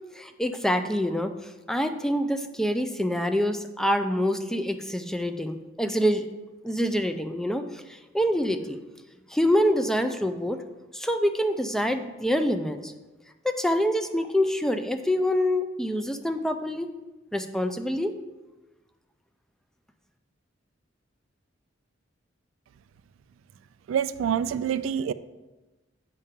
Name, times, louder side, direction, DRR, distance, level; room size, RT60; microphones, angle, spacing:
voice 1, 0.1-1.3 1.7-6.3 6.6-8.8 9.3-10.6 10.9-12.9 13.4-16.9 17.3-18.2, equal, 5° left, 7 dB, 0.4 m, -26 dB
voice 2, 23.9-25.1, right 8 dB, 85° right, 15 dB, 0.3 m, -26 dB
8.3 x 5.5 x 3.7 m, 1.1 s
head